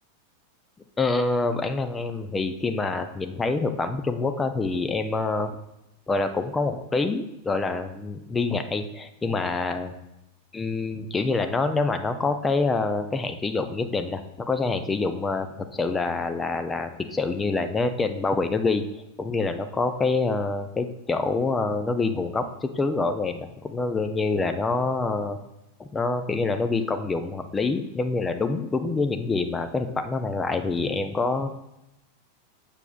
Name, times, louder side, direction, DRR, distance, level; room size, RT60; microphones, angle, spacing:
voice 1, 1.0-5.5 6.1-9.9 10.5-25.4 25.8-31.5, left 3 dB, 15° left, 8 dB, 0.5 m, -26 dB
6.9 x 6.8 x 2.3 m, 0.89 s
figure-of-eight pair, 90°, 0 cm